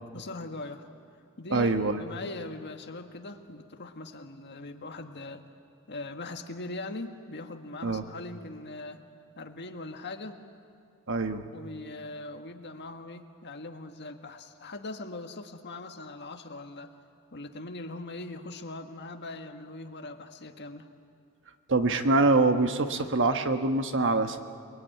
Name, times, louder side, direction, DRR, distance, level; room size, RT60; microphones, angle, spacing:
voice 1, 0.1-0.9 1.4-5.4 5.9-9.0 9.4-10.4 11.5-16.9 17.3-20.9, left 2 dB, 50° left, 5 dB, 1.6 m, -41 dB
voice 2, 1.5-2.0 7.8-8.0 11.1-11.5 21.7-24.4, right 3 dB, 55° right, 7 dB, 1.3 m, -24 dB
28.0 x 21.5 x 9.1 m, 2.4 s
head